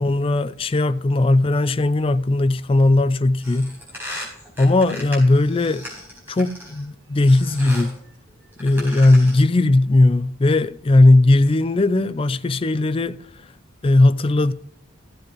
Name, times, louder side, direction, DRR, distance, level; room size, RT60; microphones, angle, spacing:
voice 1, 0.0-3.7 4.6-5.9 6.3-8.0 8.6-13.2 13.8-14.5, left 2 dB, 25° left, 0.4 m, -17 dB
sound 1, 3.4-6.8 7.3-8.0 8.5-9.5, left 1 dB, 10° right, 4.8 m, -37 dB
16.0 x 7.8 x 3.1 m
head